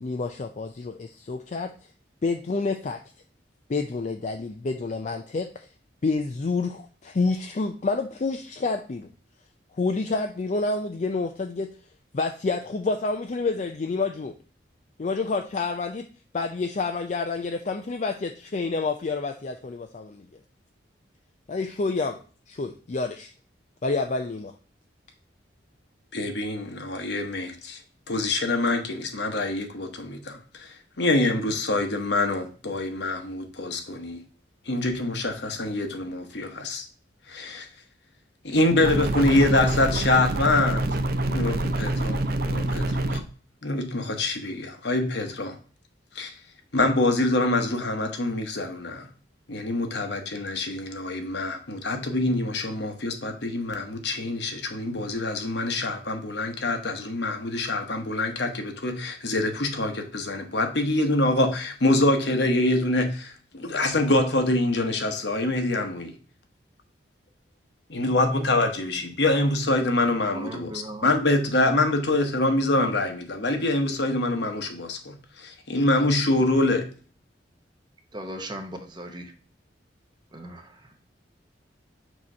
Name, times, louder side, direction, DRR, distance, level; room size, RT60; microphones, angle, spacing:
voice 1, 0.0-1.7 2.2-3.0 3.7-5.7 6.0-9.1 9.8-11.7 12.1-14.3 15.0-16.1 16.3-20.3 21.5-22.2 22.5-23.3 23.8-24.5, left 3 dB, 40° left, 0.4 m, -28 dB
voice 2, 26.1-27.8 28.1-34.2 34.7-36.8 37.3-37.7 38.4-40.8 41.2-43.2 43.6-45.6 46.1-46.3 46.7-49.1 49.5-66.1 67.9-76.9, left 2 dB, 65° left, 1.0 m, -25 dB
sound 1, 38.8-43.2, right 1 dB, 55° right, 0.5 m, -26 dB
voice 3, 70.3-71.1 78.1-79.3 80.3-80.6, right 1 dB, 25° right, 0.8 m, -37 dB
6.3 x 3.0 x 5.3 m
head